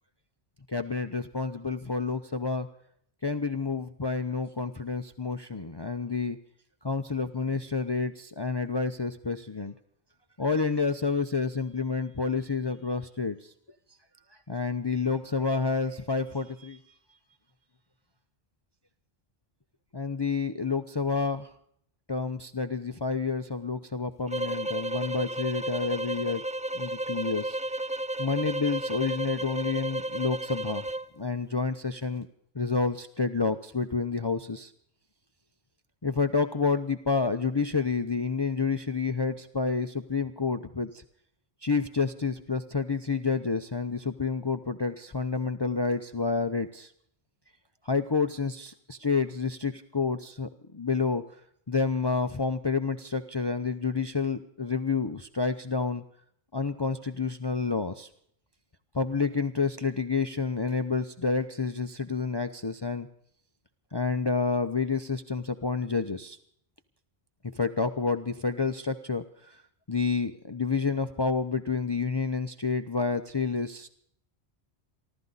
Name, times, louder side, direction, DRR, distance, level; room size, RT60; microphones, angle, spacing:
voice 1, 0.7-2.7 3.2-6.4 6.8-9.7 10.4-13.5 14.5-16.8 19.9-21.5 22.1-26.4 26.7-27.6 28.2-30.8 31.2-32.3 32.5-34.7 36.0-41.0 41.6-46.9 47.8-51.2 51.7-56.0 56.5-58.1 58.9-63.1 63.9-66.4 67.6-69.6 69.9-73.9, left 4 dB, 30° left, 9 dB, 0.6 m, -29 dB
sound 1, 24.3-31.1, right 1 dB, 10° right, 0.3 m, -33 dB
28.0 x 12.5 x 4.0 m, 0.66 s
omnidirectional pair, 1.1 m